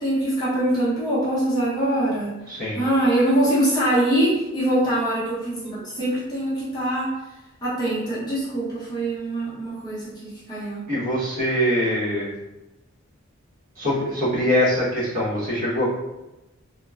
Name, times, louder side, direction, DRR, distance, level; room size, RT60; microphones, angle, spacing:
voice 1, 0.0-7.1 7.6-10.9, right 1 dB, 20° left, -10 dB, 0.8 m, -23 dB
voice 2, 2.5-2.8 10.9-12.3 13.8-15.9, equal, 40° right, -9 dB, 1.0 m, -23 dB
3.0 x 2.1 x 2.4 m, 1.0 s
head